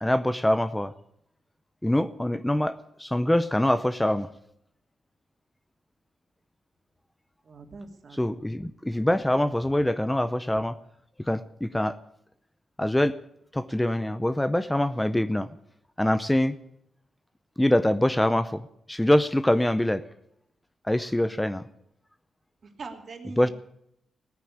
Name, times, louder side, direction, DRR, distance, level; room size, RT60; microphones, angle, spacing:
voice 1, 0.0-0.9 1.8-4.3 8.1-10.8 11.3-12.0 12.8-13.1 13.5-15.5 16.0-16.5 17.6-18.6 18.9-20.0 20.9-21.6 23.4-23.5, left 1 dB, 10° left, 13 dB, 0.6 m, -24 dB
voice 2, 7.4-8.4 22.8-23.5, right 4 dB, 50° right, 4 dB, 2.8 m, -42 dB
17.0 x 9.5 x 8.6 m, 0.76 s
cardioid pair, 100°, 0 cm